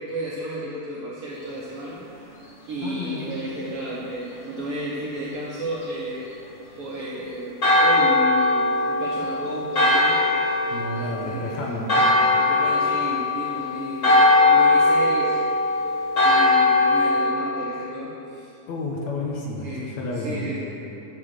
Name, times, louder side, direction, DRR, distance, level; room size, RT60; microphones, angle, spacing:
voice 1, 0.1-2.3 2.7-6.3 6.7-10.2 11.0-11.8 12.4-14.2 14.5-15.4 15.8-18.5 19.6-19.9 20.2-20.6, equal, 70° right, -6 dB, 1.4 m, -32 dB
voice 2, 2.8-3.3 10.7-12.0 18.7-20.5, left 2 dB, 65° left, -2 dB, 2.1 m, -31 dB
Church bell, 7.6-17.3, left 2 dB, 40° left, 1.0 m, -20 dB
10.0 x 5.6 x 6.5 m, 2.9 s
omnidirectional pair, 3.7 m